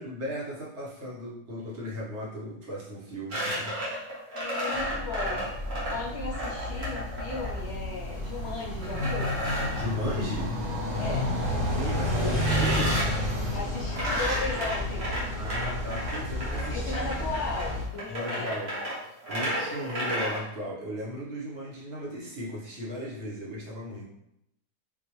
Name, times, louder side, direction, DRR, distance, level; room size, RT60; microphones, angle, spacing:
voice 1, 0.0-3.8 9.7-10.5 11.7-13.0 15.3-17.1 18.1-18.7 19.1-24.0, equal, 50° right, -5 dB, 1.2 m, -36 dB
sound 1, 3.3-7.6 8.8-9.9 12.3-13.2 13.9-20.4, right 1 dB, 70° right, 1.6 m, -32 dB
voice 2, 4.3-5.4 5.9-9.4 11.0-11.3 13.5-15.2 16.7-18.6, left 4 dB, 55° left, -3 dB, 0.8 m, -36 dB
sound 2, 4.7-17.9, left 1 dB, 25° right, 0.8 m, -31 dB
4.0 x 2.5 x 3.0 m, 0.81 s
omnidirectional pair, 1.6 m